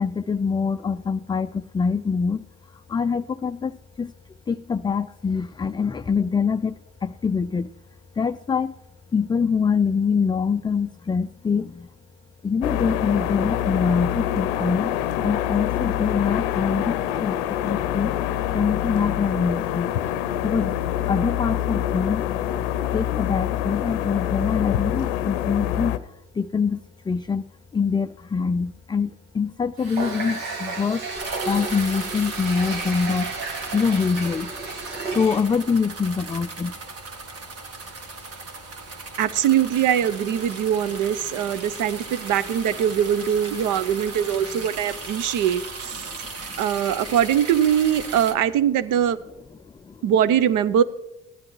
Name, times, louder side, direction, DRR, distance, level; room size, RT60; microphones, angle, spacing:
voice 1, 0.0-4.1 4.5-7.8 8.1-8.8 9.1-11.9 12.4-14.9 15.2-17.4 17.6-18.2 18.5-19.9 20.2-20.8 21.1-22.2 22.9-26.8 27.0-27.5 27.7-31.1 31.5-34.5 34.8-36.8 41.4-41.9 44.5-44.6 46.0-46.9 49.6-50.0, left 5 dB, 15° left, 10 dB, 0.3 m, -25 dB
sound 1, 12.6-26.0, left 11 dB, 80° left, 0.6 m, -26 dB
Water tap faucet, 29.8-35.6, right 3 dB, 80° right, 1.7 m, -32 dB
sound 2, 31.1-48.3, right 3 dB, 45° right, 1.6 m, -37 dB
voice 2, 39.2-46.0 46.6-49.2 50.0-50.8, right 9 dB, 65° right, 16 dB, 0.8 m, -22 dB
16.0 x 10.5 x 3.2 m, 0.92 s
hypercardioid pair, 60°, 33 cm